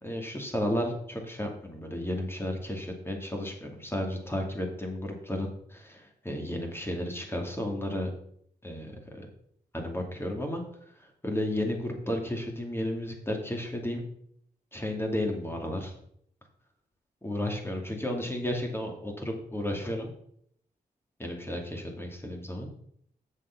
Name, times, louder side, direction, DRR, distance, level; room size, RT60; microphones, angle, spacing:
voice 1, 0.0-8.1 8.6-8.9 9.2-9.3 9.7-10.6 11.0-14.0 14.7-15.9 17.2-20.1 21.2-22.7, left 1 dB, 15° left, 2 dB, 2.5 m, -33 dB
7.2 x 6.7 x 5.9 m, 0.68 s
cardioid pair, 55°, 17 cm